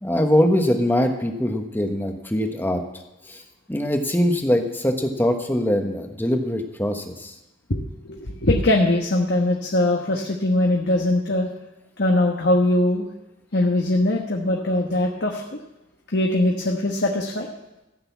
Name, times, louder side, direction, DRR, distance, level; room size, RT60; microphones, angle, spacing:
voice 1, 0.0-2.8 3.3-3.4 3.7-7.3, equal, 10° left, 4 dB, 1.2 m, -22 dB
voice 2, 7.7-11.5 12.0-13.1 13.5-15.4 16.1-17.5, left 1 dB, 60° left, 0 dB, 1.2 m, -21 dB
14.0 x 6.7 x 8.2 m, 0.96 s
head